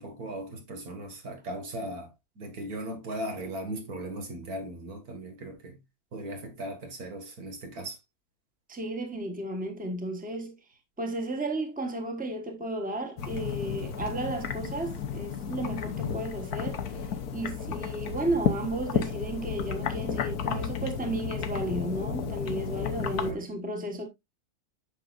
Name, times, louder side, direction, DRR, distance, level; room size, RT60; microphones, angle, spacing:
voice 1, 0.0-2.1 2.4-5.8 6.1-8.0 23.2-23.4, right 1 dB, 75° right, 2.5 m, -38 dB
voice 2, 8.7-10.5 11.0-16.8 17.3-24.1, right 2 dB, 5° right, 1.3 m, -33 dB
sound 1, 13.2-23.3, left 7 dB, 85° left, 1.5 m, -32 dB
8.9 x 6.4 x 2.5 m
omnidirectional pair, 1.6 m